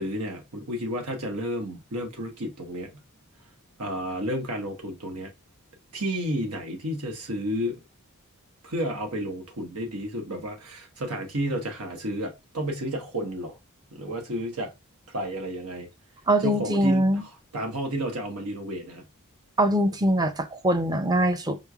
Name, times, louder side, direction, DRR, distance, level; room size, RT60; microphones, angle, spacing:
voice 1, 0.0-3.0 3.8-5.3 5.9-7.8 8.6-13.6 13.9-14.7 15.1-15.9 16.4-19.0, equal, 85° right, 1.1 m, -31 dB
voice 2, 16.3-17.2 19.6-21.6, right 1 dB, 20° right, 0.5 m, -23 dB
5.2 x 3.2 x 2.3 m
head